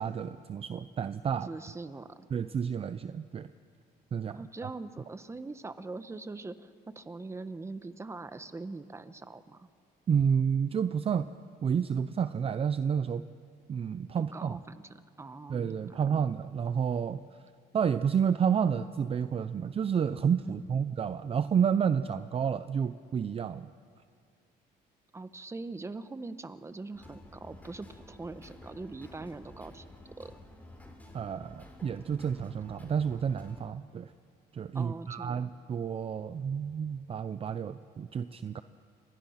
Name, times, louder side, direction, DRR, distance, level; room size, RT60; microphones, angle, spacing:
voice 1, 0.0-1.5 2.3-3.5 4.1-4.4 10.1-11.3 11.6-13.2 13.7-14.6 15.5-17.2 17.7-23.7 31.1-34.1 34.5-38.6, right 7 dB, 35° right, 12 dB, 0.6 m, -30 dB
voice 2, 1.4-2.3 4.3-9.7 14.2-15.8 20.4-20.5 25.1-29.8 30.2-30.4 34.7-35.5, right 3 dB, 15° right, 11 dB, 1.1 m, -42 dB
sound 1, 26.9-33.6, left 1 dB, 10° left, 4.6 m, -51 dB
29.5 x 24.0 x 5.8 m, 2.2 s
cardioid pair, 110°, 17 cm